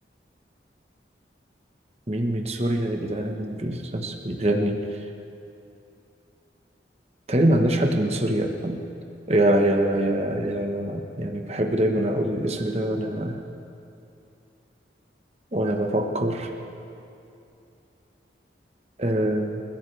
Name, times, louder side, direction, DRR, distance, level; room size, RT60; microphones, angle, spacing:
voice 1, 2.1-5.0 7.3-8.8 9.3-13.4 15.5-16.5 19.0-19.6, right 1 dB, 35° right, 3 dB, 1.1 m, -24 dB
29.0 x 14.5 x 3.4 m, 2.7 s
head